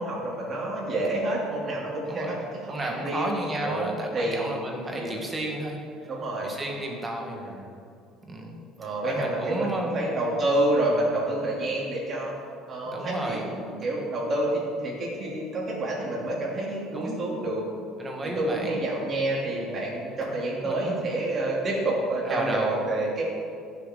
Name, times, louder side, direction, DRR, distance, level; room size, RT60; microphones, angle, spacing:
voice 1, 0.0-2.5 2.8-3.3 3.6-3.9 4.1-4.5 4.9-5.2 6.1-6.5 7.3-7.6 8.8-12.3 12.7-17.6 18.2-23.2, right 1 dB, 35° right, -4 dB, 3.1 m, -28 dB
voice 2, 2.6-5.8 6.4-7.4 8.3-8.5 9.0-10.1 12.9-13.4 16.9-17.1 18.0-18.8 20.6-21.0 22.2-22.7, right 1 dB, 15° right, 1 dB, 1.6 m, -32 dB
16.0 x 7.3 x 3.9 m, 2.4 s
cardioid pair, 145°, 0 cm